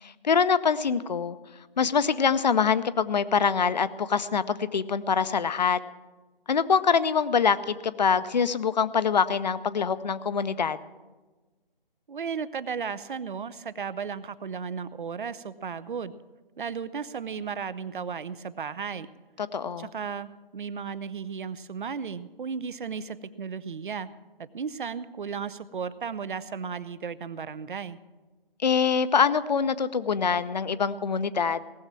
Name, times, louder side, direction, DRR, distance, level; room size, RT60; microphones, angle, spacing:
voice 1, 0.0-1.4 1.8-5.8 6.5-10.8 19.4-19.9 28.6-31.6, left 6 dB, 50° left, 14 dB, 0.7 m, -24 dB
voice 2, 12.1-16.1 16.6-19.1 19.8-24.1 24.4-28.0, right 6 dB, 60° right, 16 dB, 0.7 m, -35 dB
18.0 x 7.2 x 7.5 m, 1.2 s
figure-of-eight pair, 155°, 29 cm